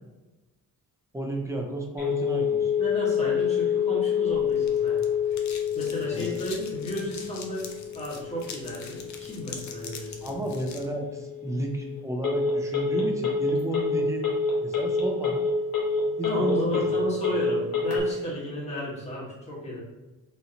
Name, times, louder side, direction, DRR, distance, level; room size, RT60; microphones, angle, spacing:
voice 1, 1.1-2.7 6.1-6.4 10.2-14.3 14.6-15.5 16.2-16.8, right 1 dB, 10° right, 1 dB, 0.4 m, -32 dB
Telephone, 2.0-18.0, left 6 dB, 75° left, 1.2 m, -28 dB
voice 2, 2.8-5.5 5.7-7.7 7.9-10.4 16.2-19.8, equal, 20° left, -5 dB, 1.3 m, -33 dB
sound 1, 4.2-10.9, left 5 dB, 50° left, 0.6 m, -44 dB
4.2 x 2.8 x 3.8 m, 1.1 s
cardioid pair, 170°, 35 cm